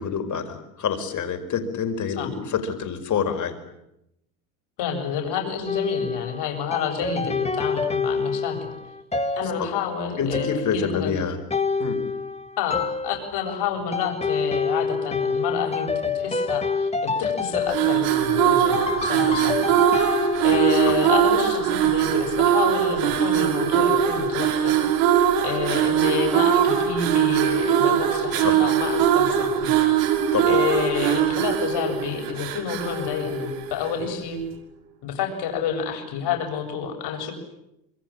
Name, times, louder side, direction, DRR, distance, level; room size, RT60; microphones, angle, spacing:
voice 1, 0.0-3.6 9.6-9.7 10.2-11.4 11.8-12.0 20.8-21.0 28.3-28.6 30.3-30.6, left 6 dB, 40° left, 7 dB, 5.4 m, -27 dB
voice 2, 4.8-8.7 9.4-11.1 12.6-20.0 20.4-29.7 30.4-34.4 35.0-37.3, left 7 dB, 55° left, 4 dB, 7.8 m, -29 dB
sound 1, 5.7-20.9, left 4 dB, 15° left, 2.2 m, -27 dB
sound 2, 17.6-34.1, right 9 dB, 75° right, 6.1 m, -21 dB
27.0 x 23.5 x 8.8 m, 0.85 s
supercardioid pair, 100°, 47 cm